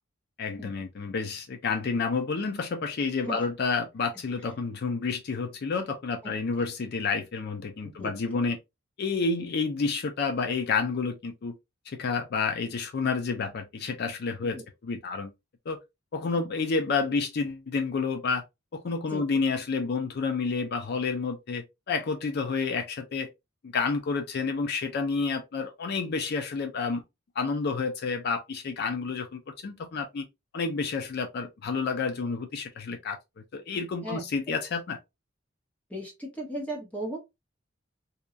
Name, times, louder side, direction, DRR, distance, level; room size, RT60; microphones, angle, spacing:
voice 1, 0.4-8.6 9.0-11.5 11.9-14.6 14.8-15.3 15.7-15.8 16.1-18.4 18.7-23.3 23.7-27.0 27.4-30.3 30.5-33.2 33.5-35.0, left 4 dB, 55° left, 0.4 m, -29 dB
voice 2, 35.9-37.2, right 1 dB, 10° left, 0.7 m, -36 dB
2.8 x 2.2 x 2.4 m
head